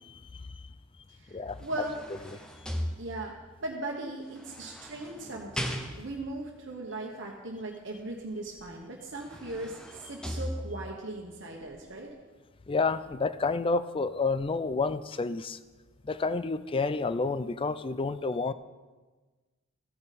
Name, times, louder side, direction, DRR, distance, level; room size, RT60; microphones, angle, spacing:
voice 1, 1.1-2.0 3.0-3.3 3.6-12.1, right 2 dB, 60° right, -1 dB, 1.2 m, -38 dB
sound 1, 1.3-3.5 4.4-6.3 8.6-8.7 9.1-11.1 11.6-11.8, equal, 5° left, 0.8 m, -38 dB
voice 2, 12.7-15.6 16.0-18.5, left 4 dB, 25° left, 14 dB, 0.4 m, -29 dB
14.0 x 8.8 x 4.2 m, 1.3 s
head